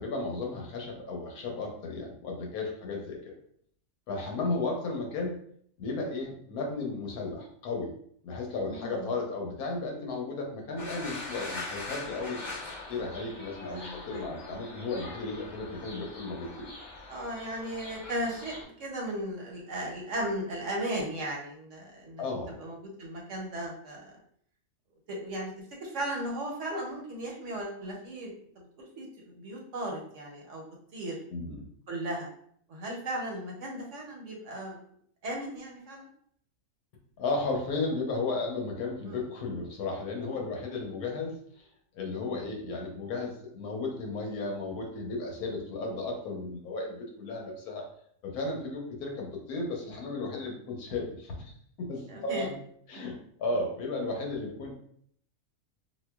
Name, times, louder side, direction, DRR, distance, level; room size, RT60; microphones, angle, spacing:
voice 1, 0.0-3.4 4.1-5.4 5.8-7.9 8.2-12.4 12.9-16.7 22.2-22.5 31.3-31.7 37.2-41.7 41.9-47.9 48.2-51.5 51.8-52.6 52.9-54.7, left 3 dB, 85° left, 1 dB, 1.3 m, -34 dB
voice 2, 8.6-9.1 13.7-14.3 17.1-22.2 22.6-24.1 25.1-25.5 25.8-28.7 29.0-30.6 30.9-31.2 31.9-32.3 32.7-34.8 35.2-36.1 39.1-39.3 40.3-40.4 42.3-42.5 52.1-52.5 53.5-53.6, right 1 dB, 60° right, -1 dB, 1.0 m, -36 dB
sound 1, 10.8-18.6, left 3 dB, 30° left, 1.2 m, -42 dB
4.2 x 2.2 x 2.2 m, 0.64 s
omnidirectional pair, 1.6 m